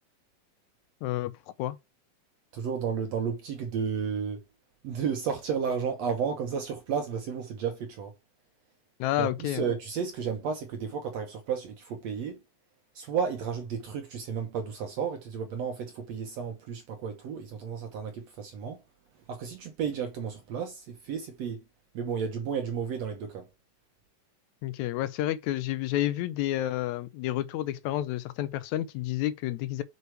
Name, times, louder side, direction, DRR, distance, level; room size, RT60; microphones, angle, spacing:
voice 1, 1.0-1.8 9.0-9.6 24.6-29.8, left 14 dB, 80° left, 1.6 m, -30 dB
voice 2, 2.5-4.4 4.8-8.1 9.2-12.4 13.0-18.8 19.3-21.6 21.9-23.5, right 6 dB, 65° right, 1.8 m, -32 dB
6.3 x 5.4 x 4.6 m
omnidirectional pair, 3.9 m